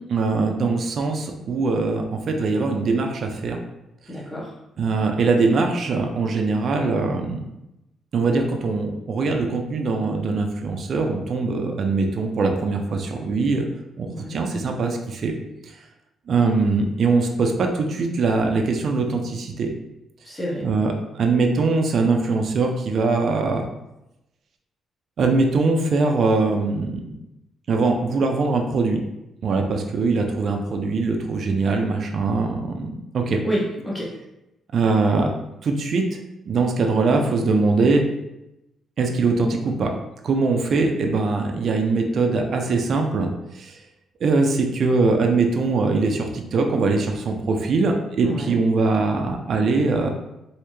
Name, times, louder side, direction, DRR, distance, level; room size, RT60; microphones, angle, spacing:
voice 1, 0.1-3.6 4.8-7.4 8.1-13.6 14.0-15.3 16.3-19.7 20.6-23.6 25.2-27.0 27.7-29.0 29.4-33.4 34.7-35.3 35.6-36.1 36.5-38.0 39.0-39.9 40.2-43.3 43.6-43.7 44.2-50.1, right 3 dB, 55° right, 3 dB, 0.5 m, -22 dB
voice 2, 4.1-4.5 14.1-14.4 20.2-20.6 33.4-34.1 48.2-48.6, equal, 15° left, -6 dB, 1.1 m, -28 dB
3.3 x 2.8 x 3.0 m, 0.89 s
cardioid pair, 90°, 0 cm